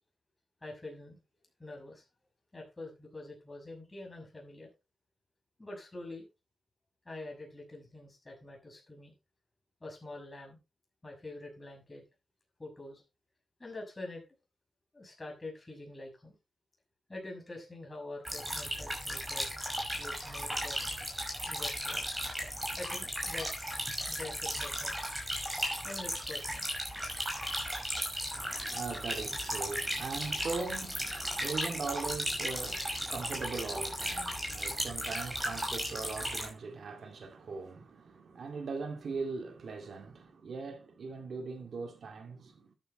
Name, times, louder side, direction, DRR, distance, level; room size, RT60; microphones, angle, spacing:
voice 1, 0.6-1.2 1.6-2.0 2.5-4.7 5.6-6.3 7.0-9.1 9.8-10.6 11.0-12.0 12.6-13.0 13.6-14.2 14.9-16.3 17.1-19.5 20.0-20.9 21.5-22.0 22.8-25.0 25.8-26.7, left 2 dB, 20° left, 6.3 m, -45 dB
sound 1, 18.2-36.5, equal, 10° right, 5.6 m, -36 dB
voice 2, 28.3-42.7, right 4 dB, 70° right, 2.3 m, -40 dB
13.0 x 10.0 x 3.1 m
wide cardioid pair, 145°, 0 cm